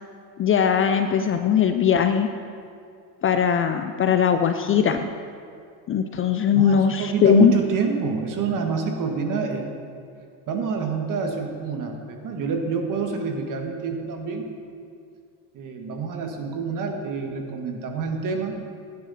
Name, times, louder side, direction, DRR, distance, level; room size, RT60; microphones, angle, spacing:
voice 1, 0.4-2.3 3.2-5.1 5.9-7.5, left 8 dB, 30° left, 8 dB, 0.5 m, -20 dB
voice 2, 6.5-9.7 10.5-14.4 15.5-18.6, right 5 dB, 45° right, 3 dB, 1.8 m, -27 dB
16.5 x 10.5 x 4.2 m, 2.4 s
cardioid pair, 125°, 44 cm